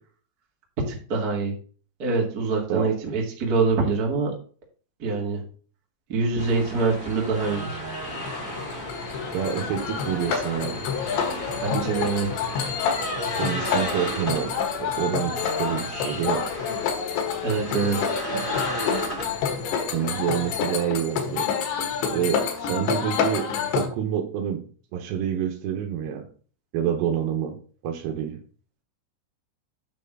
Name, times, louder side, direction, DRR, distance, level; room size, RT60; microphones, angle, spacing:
voice 1, 0.8-1.5 2.0-4.4 5.0-5.4 6.1-7.8 11.6-12.3 17.4-18.1, right 4 dB, 40° right, -1 dB, 1.3 m, -25 dB
sound 1, 6.4-20.6, equal, 30° left, 0.8 m, -35 dB
sound 2, 7.7-23.9, left 6 dB, 70° left, 3.5 m, -28 dB
voice 2, 9.3-10.8 13.4-14.5 14.8-16.5 19.9-21.5 22.1-23.4 23.8-24.6 24.9-26.3 26.7-27.6 27.8-28.4, right 9 dB, 75° right, 4 dB, 3.0 m, -27 dB
9.4 x 6.3 x 3.8 m, 0.41 s
omnidirectional pair, 5.6 m